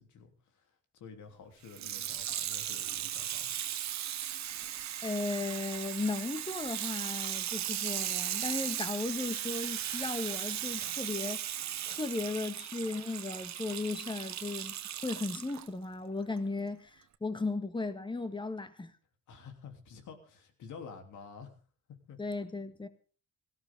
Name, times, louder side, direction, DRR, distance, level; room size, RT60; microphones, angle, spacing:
voice 1, 0.0-3.5 19.3-21.6 22.1-22.2, left 5 dB, 75° left, 3.2 m, -50 dB
Water tap faucet / Sink (filling or washing), 1.7-15.7 16.4-16.5, right 11 dB, 65° right, 1.1 m, -37 dB
voice 2, 4.6-14.7 15.0-18.9 22.2-22.9, left 3 dB, 15° left, 1.7 m, -36 dB
17.5 x 14.0 x 3.7 m
cardioid pair, 90°, 30 cm